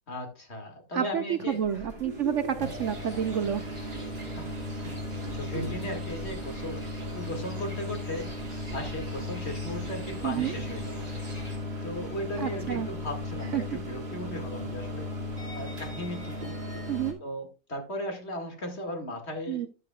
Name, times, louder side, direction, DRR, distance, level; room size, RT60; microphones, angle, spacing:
voice 1, 0.1-1.6 4.4-4.7 5.3-8.3 8.7-11.1 11.8-15.1 15.6-16.4 17.2-19.7, left 1 dB, 45° left, 4 dB, 2.3 m, -37 dB
voice 2, 0.9-3.6 10.2-10.5 12.4-12.9 13.5-13.6 16.9-17.2 19.5-19.7, right 9 dB, 65° right, 11 dB, 0.8 m, -29 dB
sound 1, 1.5-17.1, left 1 dB, 35° right, 2.5 m, -36 dB
sound 2, 2.6-11.6, equal, 20° right, 2.7 m, -45 dB
13.0 x 8.7 x 2.3 m, 0.30 s
omnidirectional pair, 1.6 m